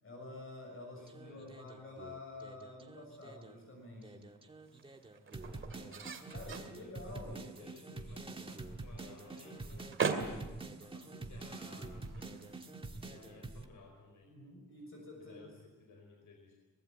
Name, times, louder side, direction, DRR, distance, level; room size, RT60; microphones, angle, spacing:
voice 1, 0.0-4.3 5.7-5.8 6.3-7.4 14.2-15.5, left 2 dB, 40° left, 1 dB, 6.6 m, -49 dB
voice 2, 0.9-1.6 5.4-10.0 10.8-12.6 12.9-14.3 15.2-16.5, left 4 dB, 70° left, 2 dB, 4.7 m, -58 dB
sound 1, 1.0-3.6 4.0-13.7, right 3 dB, 15° right, 1.6 m, -47 dB
sound 2, 3.1-13.4, right 5 dB, 40° right, 2.3 m, -44 dB
23.5 x 21.0 x 8.9 m, 1.2 s
wide cardioid pair, 170°, 32 cm